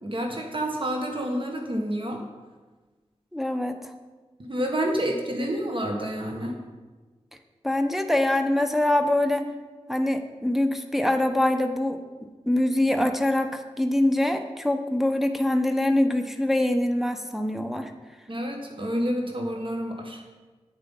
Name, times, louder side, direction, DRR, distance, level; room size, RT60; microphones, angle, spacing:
voice 1, 0.0-2.2 4.4-6.6 18.3-20.2, equal, 45° right, 2 dB, 1.5 m, -29 dB
voice 2, 3.3-3.9 7.6-9.5 9.9-12.0 12.5-17.9, left 1 dB, ahead, 5 dB, 0.9 m, -24 dB
8.7 x 7.2 x 5.6 m, 1.3 s
cardioid pair, 40°, 12 cm